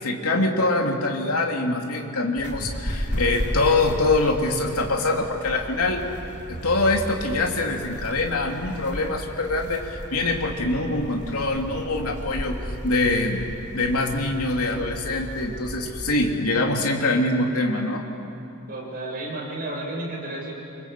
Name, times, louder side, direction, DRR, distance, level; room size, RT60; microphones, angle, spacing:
voice 1, 0.0-6.1 6.5-13.4 13.7-18.0, left 2 dB, 75° left, 1 dB, 3.0 m, -24 dB
sound 1, 2.4-16.1, equal, 50° left, 3.9 m, -34 dB
voice 2, 18.7-20.5, right 2 dB, 40° right, -3 dB, 7.6 m, -32 dB
28.0 x 25.5 x 8.3 m, 3.0 s
head